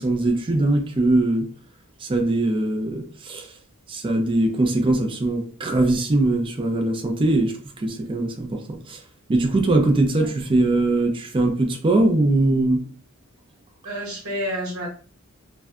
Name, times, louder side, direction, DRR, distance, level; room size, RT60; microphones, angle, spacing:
voice 1, 0.0-1.5 2.0-3.5 3.9-9.0 9.3-12.9, right 2 dB, 25° right, 0.4 m, -21 dB
voice 2, 13.8-14.9, equal, 80° right, 1.0 m, -29 dB
2.6 x 2.1 x 2.3 m
head